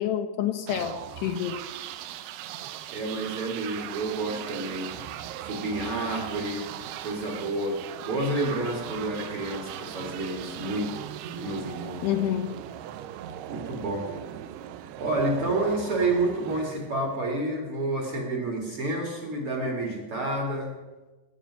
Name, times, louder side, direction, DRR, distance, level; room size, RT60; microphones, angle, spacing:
voice 1, 0.0-1.6 12.0-12.6, left 10 dB, 80° left, 5 dB, 2.8 m, -28 dB
sound 1, 0.7-17.4, right 11 dB, 80° right, 2.6 m, -39 dB
voice 2, 2.9-5.0 5.4-6.7 7.0-10.9 11.3-12.1 13.5-14.1 15.0-20.8, right 2 dB, 45° right, 0 dB, 2.1 m, -29 dB
18.5 x 8.9 x 5.6 m, 1.2 s
omnidirectional pair, 4.9 m